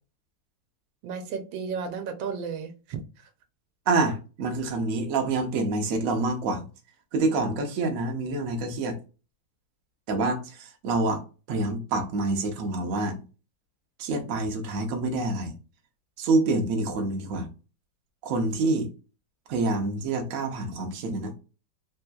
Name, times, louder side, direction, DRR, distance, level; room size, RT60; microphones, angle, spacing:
voice 1, 1.0-3.3, right 6 dB, 85° right, 1.4 m, -34 dB
voice 2, 3.9-6.6 7.1-9.0 10.1-13.2 14.0-15.5 16.2-17.5 18.2-18.9 19.5-21.3, right 3 dB, 60° right, 0.9 m, -27 dB
3.4 x 2.9 x 2.2 m
omnidirectional pair, 2.0 m